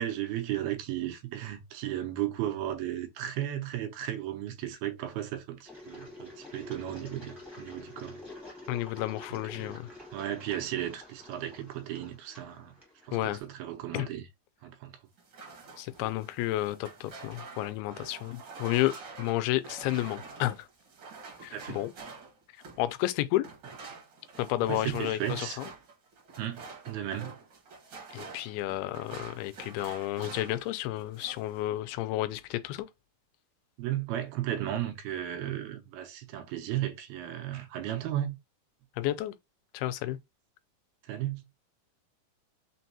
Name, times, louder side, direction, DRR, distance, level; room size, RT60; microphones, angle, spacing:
voice 1, 0.0-8.2 9.3-9.8 10.1-12.7 13.1-14.3 14.6-14.9 21.5-21.8 24.6-25.6 26.4-27.3 33.8-38.4 41.1-41.4, right 12 dB, 80° right, 2.5 m, -35 dB
Engine, 5.6-13.4, left 2 dB, ahead, 0.4 m, -48 dB
voice 2, 8.7-9.9 13.1-13.4 13.9-14.1 15.8-20.7 21.4-21.9 22.8-23.5 24.4-25.7 28.1-32.9 39.0-39.3 39.7-40.2, left 15 dB, 85° left, 2.5 m, -31 dB
sound 1, 15.2-22.9 23.4-30.7 31.0-31.5, right 4 dB, 60° right, 1.2 m, -47 dB
5.9 x 2.2 x 2.7 m
omnidirectional pair, 4.4 m